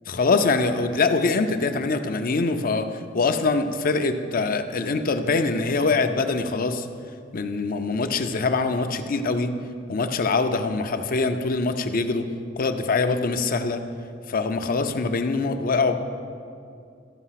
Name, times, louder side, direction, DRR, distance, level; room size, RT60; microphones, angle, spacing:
voice 1, 0.1-6.9 7.3-9.5 9.9-12.3 12.6-13.8 14.3-16.0, left 3 dB, 45° left, 8 dB, 0.5 m, -23 dB
13.0 x 5.4 x 5.8 m, 2.4 s
head